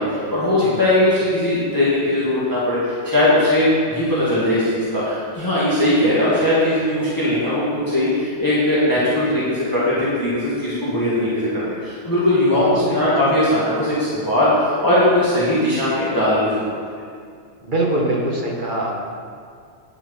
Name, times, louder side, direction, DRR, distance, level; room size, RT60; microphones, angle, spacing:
voice 1, 0.0-16.8, left 1 dB, 15° left, -10 dB, 2.1 m, -19 dB
voice 2, 0.6-0.9 12.5-13.3 17.6-19.0, right 1 dB, 45° right, -2 dB, 1.5 m, -24 dB
9.7 x 7.4 x 5.5 m, 2.2 s
omnidirectional pair, 1.2 m